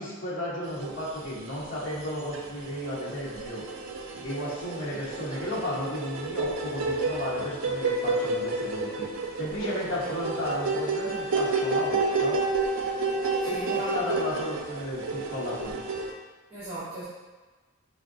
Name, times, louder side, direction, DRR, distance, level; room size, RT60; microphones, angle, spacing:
voice 1, 0.0-3.6 4.1-9.1 9.3-12.4 13.4-15.8, left 1 dB, 60° left, -7 dB, 1.0 m, -34 dB
sound 1, 0.8-1.6 1.9-16.1, right 3 dB, 75° right, 0.4 m, -30 dB
voice 2, 13.4-14.1 16.5-17.0, right 2 dB, 25° right, -11 dB, 0.8 m, -38 dB
4.5 x 2.2 x 2.5 m, 1.3 s
head